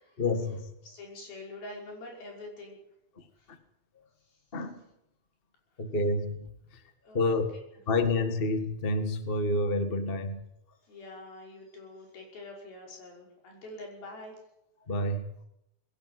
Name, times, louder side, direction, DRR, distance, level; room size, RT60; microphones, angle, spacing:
voice 1, 0.2-0.7 3.2-3.6 4.5-4.8 5.8-6.8 7.1-7.5 7.9-10.4 14.9-15.4, left 2 dB, 40° left, 8 dB, 0.8 m, -29 dB
voice 2, 0.8-2.8 3.4-3.5 4.3-4.4 7.0-7.4 10.9-14.4, left 2 dB, 85° left, 0 dB, 7.5 m, -45 dB
21.5 x 17.5 x 9.2 m, 0.83 s
omnidirectional pair, 4.2 m